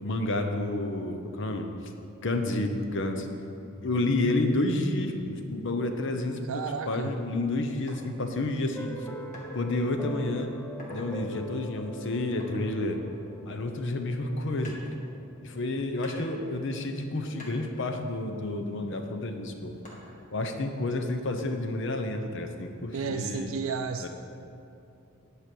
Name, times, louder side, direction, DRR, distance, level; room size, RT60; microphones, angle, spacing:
voice 1, 0.0-1.7 2.2-3.3 3.8-8.9 9.5-10.5 10.9-13.0 13.5-14.8 15.4-19.8 20.3-23.5 24.0-24.1, left 2 dB, 60° left, 5 dB, 0.8 m, -30 dB
voice 2, 6.4-7.1 22.9-24.1, right 5 dB, 75° right, 5 dB, 0.4 m, -32 dB
sound 1, 7.9-8.0 9.3-9.5 10.0-10.3 10.7-11.1 12.4-13.9 14.6-15.5 16.0-17.1 17.4-19.0 19.8-20.4, equal, 40° left, 1.8 m, -48 dB
sound 2, 8.7-18.0, right 1 dB, 10° left, 0.5 m, -44 dB
9.5 x 5.0 x 7.7 m, 2.6 s
head